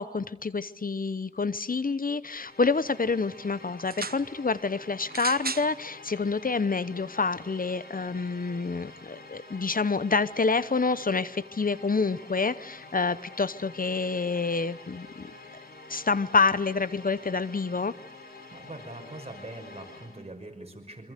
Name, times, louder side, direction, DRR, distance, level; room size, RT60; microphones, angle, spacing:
voice 1, 0.0-15.3 15.9-17.9, left 4 dB, 70° left, 16 dB, 0.8 m, -27 dB
sound 1, 2.4-20.3, left 3 dB, 85° left, 4.6 m, -48 dB
sound 2, 3.8-4.2 5.1-5.7 6.6-6.7, right 4 dB, 80° right, 1.0 m, -34 dB
voice 2, 18.3-21.1, right 1 dB, 45° right, 3 dB, 6.0 m, -43 dB
27.0 x 25.5 x 6.7 m, 0.85 s
wide cardioid pair, 55°, 15 cm